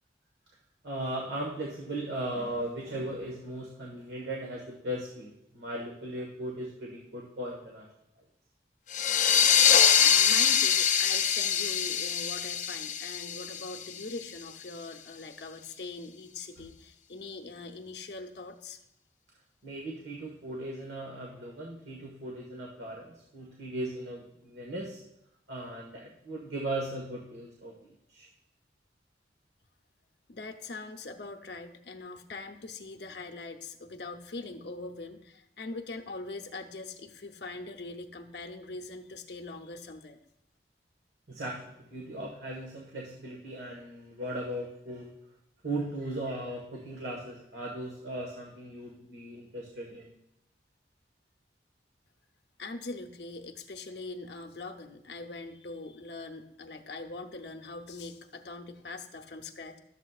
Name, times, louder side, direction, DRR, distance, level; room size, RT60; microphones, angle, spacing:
voice 1, 0.8-7.9 19.6-25.0 25.5-28.3 41.3-45.1 45.6-50.1, right 1 dB, 75° right, -1 dB, 1.4 m, -37 dB
sound 1, 8.9-14.2, left 8 dB, 45° left, 0.4 m, -24 dB
voice 2, 10.0-18.8 30.3-40.2 52.6-59.8, left 3 dB, 80° left, 4 dB, 0.7 m, -42 dB
12.5 x 7.2 x 2.4 m, 0.79 s
head